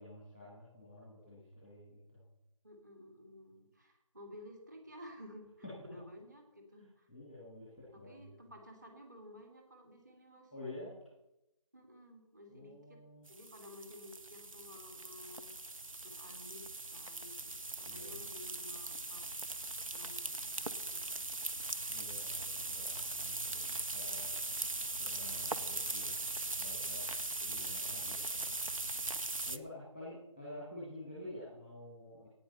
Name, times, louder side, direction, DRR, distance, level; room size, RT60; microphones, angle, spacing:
voice 1, 0.0-2.2 5.6-5.7 7.1-8.5 10.5-10.9 12.5-13.3 17.8-18.2 21.9-24.3 25.0-26.1 26.6-27.0 27.4-28.6 29.4-32.3, left 1 dB, 5° right, -8 dB, 1.8 m, -50 dB
voice 2, 2.6-7.1 7.9-10.5 11.7-15.5 16.0-16.7 16.9-19.3 19.9-21.2 27.4-27.7, left 1 dB, 35° right, 3 dB, 3.0 m, -54 dB
sound 1, 13.3-29.6, right 2 dB, 85° right, 1.1 m, -40 dB
15.0 x 9.5 x 5.5 m, 0.91 s
figure-of-eight pair, 175°, 17 cm